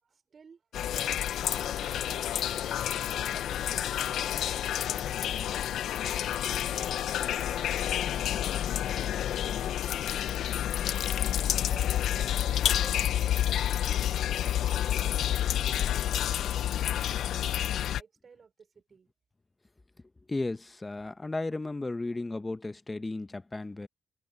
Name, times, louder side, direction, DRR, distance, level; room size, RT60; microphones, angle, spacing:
voice 1, 0.0-0.7 1.0-2.6 3.0-5.6 5.9-6.9 7.4-10.5 11.0-14.0 14.3-19.1, right 5 dB, 45° right, 4.8 m, -56 dB
sound 1, 0.7-18.0, left 11 dB, 80° left, 0.7 m, -29 dB
voice 2, 20.3-23.9, left 2 dB, 20° left, 1.0 m, -34 dB
cardioid pair, 100°, 0 cm